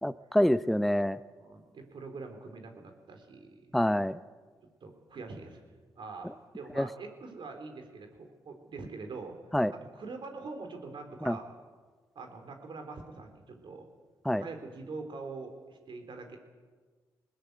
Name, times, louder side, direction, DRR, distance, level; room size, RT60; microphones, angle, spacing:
voice 1, 0.0-1.2 3.7-4.1 6.8-6.9 9.5-9.7 11.3-11.4 14.3-14.4, equal, ahead, 14 dB, 0.7 m, -26 dB
voice 2, 1.4-3.7 4.8-5.6 6.0-9.4 9.7-11.5 12.2-13.9 14.4-16.4, right 3 dB, 60° right, 5 dB, 3.8 m, -44 dB
20.0 x 19.0 x 8.1 m, 1.4 s
hypercardioid pair, 40°, 9 cm